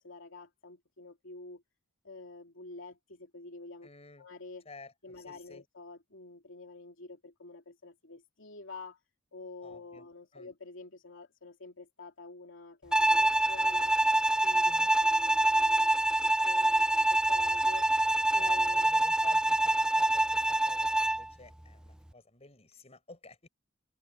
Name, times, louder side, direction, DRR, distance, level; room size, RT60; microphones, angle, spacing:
voice 1, 0.0-1.6 2.0-3.9 4.2-4.7 5.0-9.0 9.3-14.0 14.4-17.9 18.3-18.8, left 3 dB, 75° left, 2.7 m, -48 dB
voice 2, 3.8-4.3 4.7-4.9 5.3-5.6 9.6-10.0 10.3-10.5 14.6-14.9 18.3-23.5, left 3 dB, 35° left, 5.5 m, -52 dB
Bowed string instrument, 12.9-21.3, right 1 dB, 5° right, 0.4 m, -26 dB
head